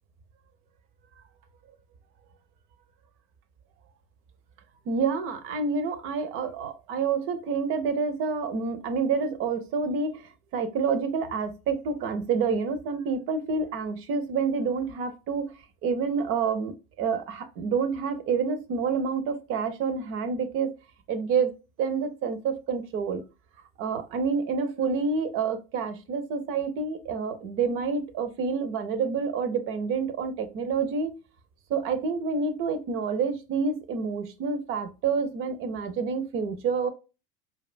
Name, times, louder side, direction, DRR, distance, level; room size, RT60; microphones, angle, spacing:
voice 1, 4.9-15.5 15.8-20.7 21.1-21.5 21.8-23.2 23.8-31.1 31.7-36.9, right 5 dB, 30° right, 0.5 m, -28 dB
4.6 x 2.3 x 2.4 m
figure-of-eight pair, 85°, 48 cm